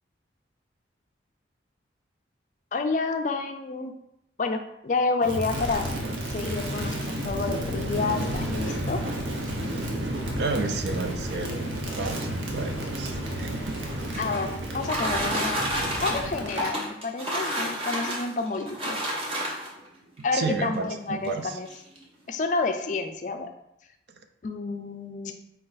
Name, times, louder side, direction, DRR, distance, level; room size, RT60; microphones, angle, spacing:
voice 1, 2.7-3.9 4.4-5.9 6.3-9.0 14.2-15.6 16.0-19.0 20.2-21.7 22.3-23.5 24.4-25.3, left 3 dB, 40° left, 6 dB, 0.4 m, -29 dB
Crackle, 5.2-16.8, right 1 dB, 90° right, 0.7 m, -31 dB
voice 2, 10.4-11.7 12.0-13.8 20.3-21.6, right 3 dB, 60° right, 7 dB, 0.4 m, -31 dB
sound 1, 13.7-19.9 20.7-20.8 21.2-21.3 21.7-22.0, equal, 30° right, 0.8 m, -30 dB
4.4 x 2.5 x 3.9 m, 0.78 s
head